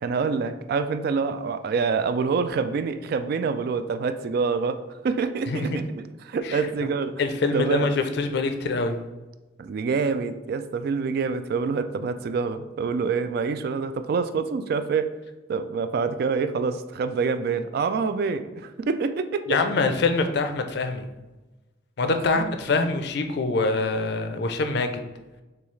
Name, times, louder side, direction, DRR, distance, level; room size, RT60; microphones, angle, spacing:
voice 1, 0.0-5.8 6.2-7.2 7.5-7.9 9.6-15.1 15.5-19.6 22.0-22.5, right 5 dB, 55° right, 10 dB, 0.3 m, -26 dB
voice 2, 5.5-5.8 6.4-6.6 7.2-9.0 19.5-21.1 22.0-25.0, left 3 dB, 65° left, 7 dB, 0.5 m, -24 dB
6.7 x 2.3 x 3.1 m, 1.1 s
head